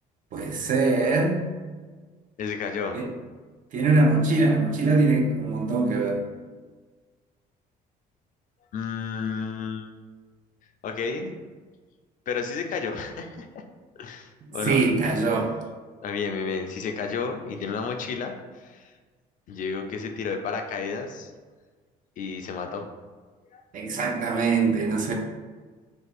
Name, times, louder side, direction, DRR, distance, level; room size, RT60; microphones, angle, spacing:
voice 1, 0.3-1.4 2.9-3.1 3.7-6.2 14.6-15.5 23.7-25.1, right 3 dB, 50° right, 2 dB, 0.5 m, -22 dB
voice 2, 2.4-3.0 8.7-9.9 10.8-11.3 12.3-13.6 14.0-14.8 16.0-18.9 19.5-21.3 22.2-22.9 23.5-23.6, left 5 dB, 50° left, 4 dB, 0.4 m, -31 dB
2.6 x 2.3 x 4.0 m, 1.4 s
cardioid pair, 110°, 17 cm